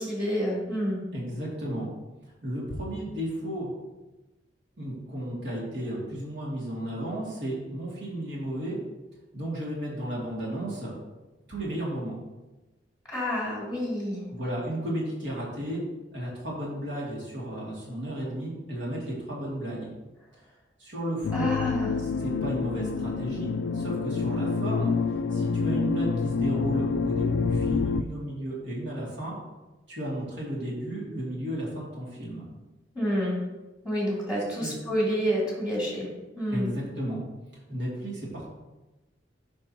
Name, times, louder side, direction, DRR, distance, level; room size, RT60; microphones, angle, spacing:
voice 1, 0.0-1.0 13.1-14.2 21.3-22.0 32.9-33.4 33.8-36.1 36.4-36.7, equal, 5° right, -6 dB, 2.6 m, -28 dB
voice 2, 1.1-1.9 2.4-3.7 4.8-8.8 9.3-10.9 11.5-12.2 14.3-15.8 16.1-19.9 20.8-21.5 22.0-24.9 25.3-29.3 29.9-32.4 34.6-34.8 36.5-37.2 37.7-38.5, right 1 dB, 70° right, -5 dB, 2.5 m, -33 dB
sound 1, 21.2-28.0, left 4 dB, 75° left, 0.3 m, -27 dB
12.0 x 5.3 x 2.9 m, 1.1 s
head